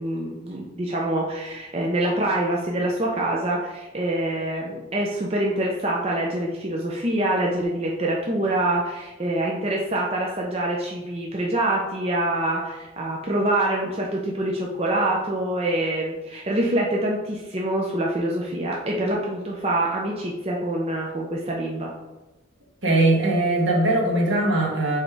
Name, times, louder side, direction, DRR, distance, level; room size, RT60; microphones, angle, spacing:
voice 1, 0.0-21.9, right 1 dB, 30° right, -2 dB, 0.6 m, -25 dB
voice 2, 22.8-25.0, right 2 dB, 65° right, -1 dB, 1.6 m, -20 dB
5.1 x 4.3 x 4.8 m, 1.1 s
head